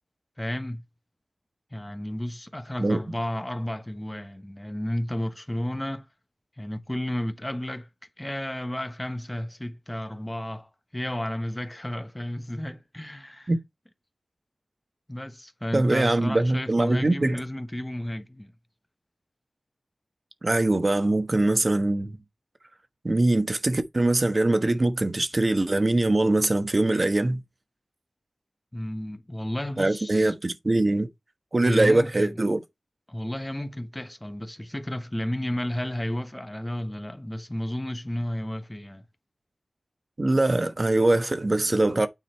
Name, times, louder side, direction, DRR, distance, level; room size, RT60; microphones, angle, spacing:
voice 1, 0.4-0.8 1.7-6.1 6.6-7.9 8.2-13.5 15.1-18.5 28.7-30.3 31.6-32.4 33.1-39.0, left 1 dB, 15° left, 1.2 m, -32 dB
voice 2, 15.7-17.4 20.4-22.2 23.0-27.4 29.8-31.1 31.5-32.6 40.2-42.1, right 2 dB, 40° right, 1.3 m, -22 dB
9.3 x 3.9 x 4.5 m
wide cardioid pair, 65°, 0 cm